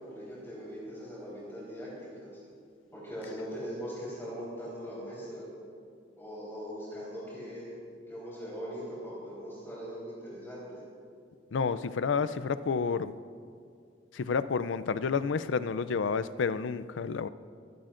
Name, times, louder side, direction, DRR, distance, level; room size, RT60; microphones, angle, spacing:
voice 1, 0.0-2.3 2.9-5.4 6.2-7.7 8.1-10.8, equal, 15° left, -8 dB, 4.1 m, -40 dB
voice 2, 11.5-13.1 14.1-17.3, left 5 dB, 80° left, 14 dB, 0.4 m, -30 dB
28.5 x 11.5 x 2.6 m, 2.3 s
head